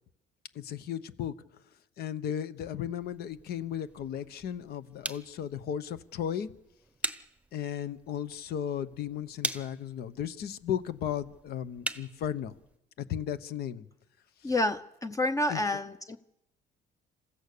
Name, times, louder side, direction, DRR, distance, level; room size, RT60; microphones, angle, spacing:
voice 1, 0.5-1.3 2.0-6.5 7.5-12.5 13.0-13.8 14.4-14.5 15.5-15.6, left 9 dB, 70° left, 14 dB, 1.0 m, -35 dB
sound 1, 3.0-12.8, right 2 dB, 5° right, 0.9 m, -42 dB
voice 2, 14.4-16.2, left 1 dB, 20° left, 10 dB, 0.7 m, -29 dB
27.0 x 15.0 x 6.8 m, 0.86 s
cardioid pair, 110°, 17 cm